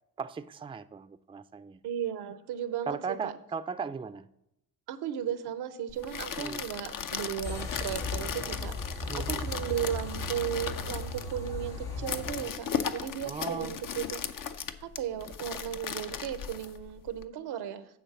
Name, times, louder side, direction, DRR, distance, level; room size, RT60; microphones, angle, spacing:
voice 1, 0.2-1.8 2.9-4.3 6.4-6.6 9.1-9.4 13.2-13.7, right 5 dB, 15° right, 0.4 m, -37 dB
voice 2, 1.8-3.3 4.9-14.3 14.8-17.9, right 9 dB, 85° right, 0.8 m, -35 dB
sound 1, 5.9-17.2, left 7 dB, 55° left, 0.7 m, -37 dB
sound 2, 7.4-12.4, left 2 dB, 80° left, 1.8 m, -37 dB
9.4 x 4.0 x 7.2 m
supercardioid pair, 60°, 38 cm